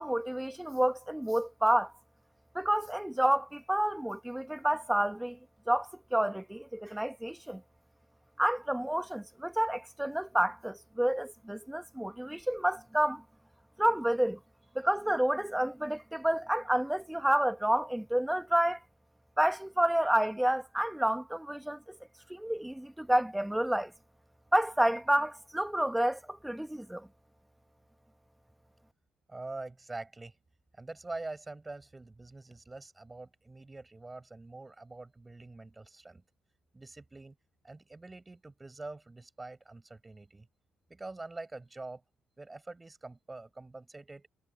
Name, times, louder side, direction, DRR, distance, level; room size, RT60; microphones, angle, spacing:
voice 1, 0.0-1.9 2.5-5.4 5.7-7.6 8.4-13.2 13.8-14.4 14.7-18.8 19.4-22.0 22.3-23.9 24.5-27.1, right 1 dB, 5° right, 1.6 m, -29 dB
voice 2, 29.3-30.4 30.7-36.2 36.7-37.4 37.6-40.5 40.9-42.0 42.4-44.3, right 2 dB, 20° right, 5.9 m, -45 dB
supercardioid pair, 70°, 0 cm